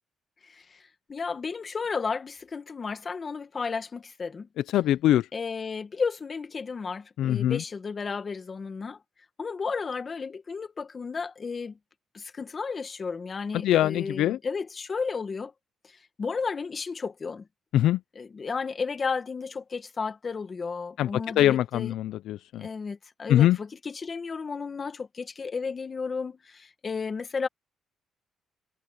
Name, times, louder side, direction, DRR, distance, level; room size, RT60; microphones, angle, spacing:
voice 1, 0.4-4.5 5.3-9.0 9.4-11.8 12.1-15.5 15.8-17.5 18.2-21.9 22.6-27.5, left 5 dB, 35° left, 1.9 m, -33 dB
voice 2, 4.7-5.2 7.2-7.6 13.6-14.4 17.7-18.0 21.0-21.1 21.4-22.7 23.3-23.6, left 12 dB, 80° left, 0.5 m, -22 dB
cardioid pair, 90°, 0 cm